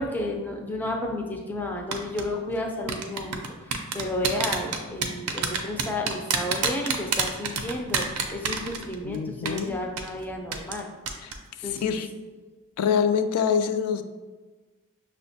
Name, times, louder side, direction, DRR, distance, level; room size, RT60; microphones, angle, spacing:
voice 1, 0.0-10.9 11.6-12.0, left 1 dB, 10° left, 1 dB, 0.3 m, -32 dB
sound 1, 1.9-2.2 2.9-9.1 9.4-9.6 10.0-10.1 10.5-10.8 11.1-11.3 11.6-11.8, right 6 dB, 85° right, 0.4 m, -27 dB
voice 2, 9.0-9.8 11.2-11.3 11.6-12.1 12.8-14.0, left 7 dB, 85° left, 9 dB, 0.3 m, -25 dB
6.0 x 2.1 x 2.6 m, 1.3 s
head